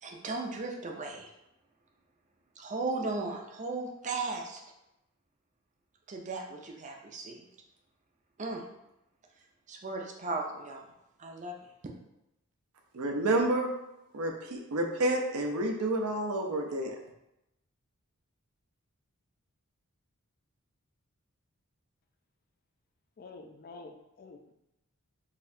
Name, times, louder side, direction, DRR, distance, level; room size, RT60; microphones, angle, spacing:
voice 1, 0.0-1.3 2.6-4.6 6.1-7.4 8.4-8.6 9.7-10.9 11.2-11.5, right 3 dB, 35° right, 1 dB, 0.5 m, -36 dB
voice 2, 12.9-13.7 14.1-17.0, right 1 dB, 75° right, 3 dB, 0.6 m, -29 dB
voice 3, 23.2-24.5, left 3 dB, 40° left, 5 dB, 0.3 m, -48 dB
4.1 x 2.7 x 2.6 m, 0.88 s
head